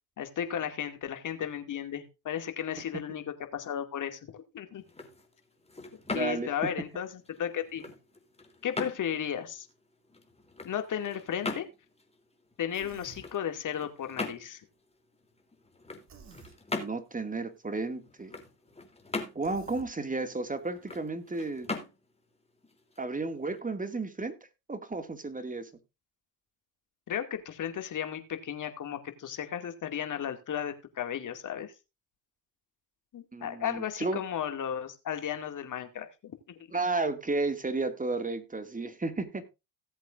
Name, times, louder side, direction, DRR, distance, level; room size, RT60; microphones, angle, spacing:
voice 1, 0.2-3.2 3.5-4.8 6.1-7.8 8.6-9.7 10.6-11.7 12.6-14.6 27.1-31.7 33.1-36.3, left 9 dB, 50° left, 7 dB, 2.4 m, -34 dB
sound 1, 4.7-23.6, left 3 dB, 15° left, 3.3 m, -42 dB
voice 2, 6.1-6.7 16.8-18.3 19.3-21.7 23.0-24.4 24.7-25.7 33.3-34.2 36.7-39.5, right 3 dB, 20° right, 9 dB, 2.3 m, -33 dB
Human voice, 12.7-13.3 16.1-16.6 19.4-19.9, right 5 dB, 45° right, 2.7 m, -51 dB
17.5 x 8.0 x 2.6 m, 0.26 s
hypercardioid pair, 65°, 39 cm